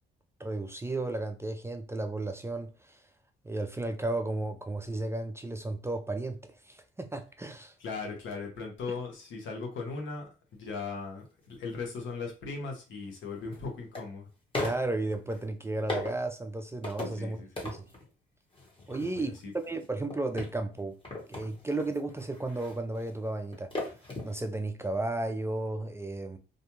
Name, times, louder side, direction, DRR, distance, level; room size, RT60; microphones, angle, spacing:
voice 1, 0.4-3.0 3.4-7.7 14.6-17.4 17.6-17.9 18.9-21.0 21.3-23.7 24.2-26.4, right 2 dB, 15° right, 0.3 m, -34 dB
voice 2, 7.8-14.3 17.2-17.5 19.1-19.5, left 4 dB, 75° left, 1.0 m, -38 dB
sound 1, 11.6-11.7 13.1-14.0 14.5-15.4 15.9-16.3 16.8-17.3 17.6-18.1 18.5-24.4 24.7-24.8, left 2 dB, 25° left, 1.1 m, -39 dB
2.5 x 2.2 x 2.9 m
cardioid pair, 90°, 20 cm